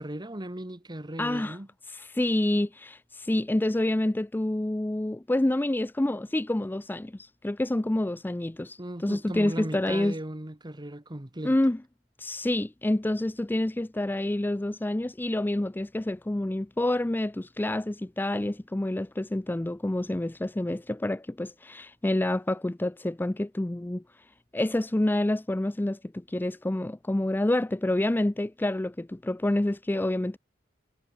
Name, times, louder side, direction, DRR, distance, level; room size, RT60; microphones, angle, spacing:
voice 1, 0.0-1.7 8.8-11.6, right 1 dB, 25° right, 1.6 m, -37 dB
voice 2, 1.2-1.6 1.9-10.1 11.4-11.8 12.2-24.0 24.5-30.4, left 1 dB, 10° left, 0.4 m, -28 dB
head